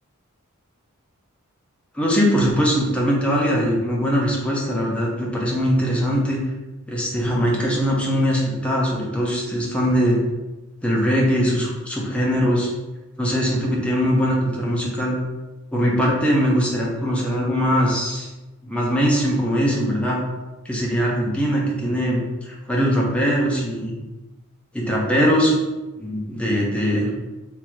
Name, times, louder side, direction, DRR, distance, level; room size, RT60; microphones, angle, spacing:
voice 1, 1.9-6.4 6.9-10.2 10.8-12.7 13.2-15.2 15.7-18.3 18.6-20.2 20.6-23.9 24.7-25.5 26.0-27.1, equal, 5° left, -4 dB, 1.0 m, -21 dB
3.7 x 3.0 x 4.7 m, 1.1 s
head